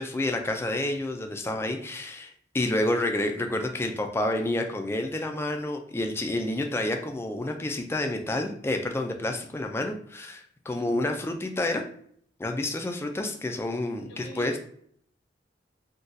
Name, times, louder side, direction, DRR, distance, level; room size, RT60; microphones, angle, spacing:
voice 1, 0.0-11.8 12.4-14.6, left 1 dB, 15° left, 4 dB, 0.3 m, -29 dB
voice 2, 14.0-14.6, equal, 60° left, 1 dB, 0.8 m, -43 dB
3.9 x 2.2 x 2.5 m, 0.63 s
head